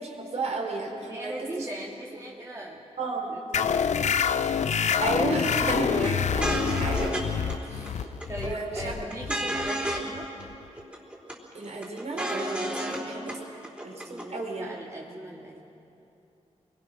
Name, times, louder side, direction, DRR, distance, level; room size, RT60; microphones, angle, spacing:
voice 1, 0.0-1.7 3.0-3.4 5.0-8.1 8.4-8.9 11.5-13.4 13.8-14.7, right 2 dB, 65° right, 0 dB, 4.8 m, -33 dB
voice 2, 1.1-2.8 3.5-4.8 5.9-6.4 7.6-7.8 8.3-10.3 12.7-13.1 14.1-15.6, right 1 dB, 25° right, -3 dB, 2.2 m, -40 dB
sound 1, 3.5-10.7, left 7 dB, 75° left, 0.7 m, -27 dB
sound 2, 6.0-6.1 6.4-7.2 7.5-7.6 7.9-8.5 8.8-10.1 10.4-10.5 10.8-11.3 11.6-13.0 13.3-13.4 13.6-14.2, right 1 dB, 10° right, 4.1 m, -31 dB
28.0 x 22.0 x 6.2 m, 2.9 s
wide cardioid pair, 90°, 12 cm